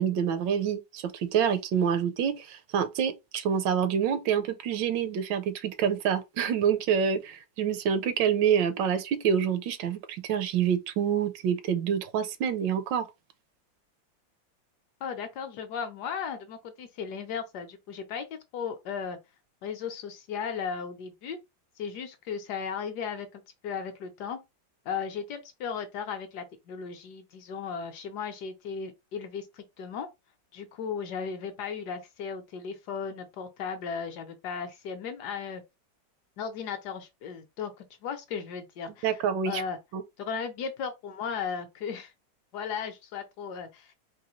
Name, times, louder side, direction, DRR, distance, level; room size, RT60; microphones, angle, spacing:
voice 1, 0.0-13.0 39.0-39.6 39.9-40.0, right 8 dB, 80° right, 1.2 m, -27 dB
voice 2, 15.0-18.2 18.5-19.2 19.6-21.4 21.8-24.4 24.8-30.1 30.5-35.6 36.4-39.8 40.2-42.1 42.5-43.9, left 6 dB, 70° left, 1.1 m, -36 dB
4.0 x 2.6 x 3.0 m
omnidirectional pair, 2.0 m